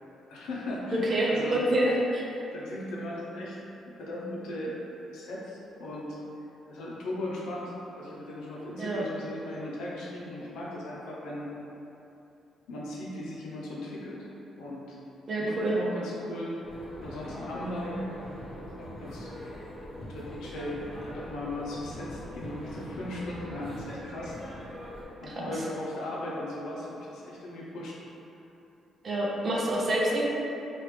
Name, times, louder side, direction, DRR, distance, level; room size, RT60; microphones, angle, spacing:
voice 1, 0.3-1.6 2.5-3.6 3.9-4.8 5.1-6.2 6.7-11.5 12.7-14.3 14.6-15.0 15.3-18.0 18.8-19.3 20.0-24.7 25.2-27.9, left 1 dB, 85° left, -5 dB, 0.6 m, -37 dB
voice 2, 0.9-2.2 8.8-9.0 15.3-15.8 25.4-25.5 29.0-30.2, right 1 dB, 45° right, -4 dB, 0.6 m, -27 dB
sound 1, 16.6-25.1, equal, 35° left, 0.9 m, -42 dB
3.2 x 2.4 x 3.3 m, 2.9 s
cardioid pair, 90°, 0 cm